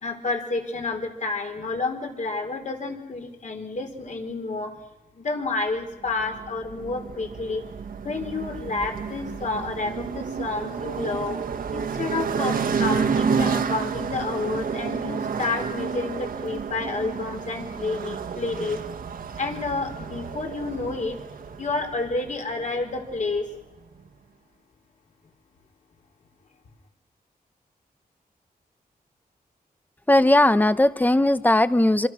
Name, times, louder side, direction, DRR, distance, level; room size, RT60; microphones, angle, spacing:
voice 1, 0.0-4.7 5.1-7.6 8.0-11.4 11.7-18.8 19.4-21.2 21.6-23.5, left 3 dB, 50° left, 4 dB, 4.5 m, -30 dB
sound 1, 6.1-23.5, right 6 dB, 65° right, 1.6 m, -30 dB
voice 2, 30.1-32.1, left 1 dB, 10° left, 13 dB, 0.9 m, -18 dB
26.5 x 26.0 x 6.3 m, 0.93 s
wide cardioid pair, 175°, 16 cm